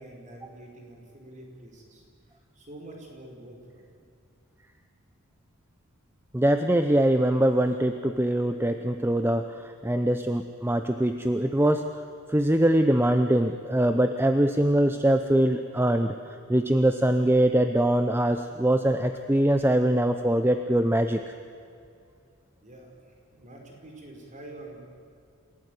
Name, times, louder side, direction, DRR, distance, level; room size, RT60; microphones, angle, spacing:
voice 1, 0.0-3.9 22.6-24.8, right 1 dB, 35° right, 1 dB, 5.0 m, -47 dB
voice 2, 6.3-11.8 12.3-21.3, right 1 dB, 10° right, 8 dB, 0.7 m, -23 dB
28.0 x 16.5 x 9.5 m, 2.3 s
head